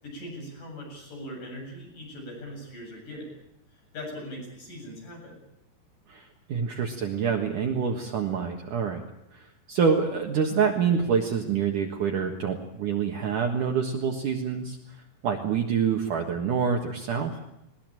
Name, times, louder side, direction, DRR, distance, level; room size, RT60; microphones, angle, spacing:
voice 1, 0.0-3.3 3.7-5.4, equal, 50° left, 0 dB, 9.6 m, -40 dB
voice 2, 6.5-9.0 9.3-14.8 15.2-17.3, right 6 dB, 60° right, 2 dB, 2.8 m, -26 dB
21.0 x 20.0 x 9.0 m, 0.84 s
omnidirectional pair, 4.7 m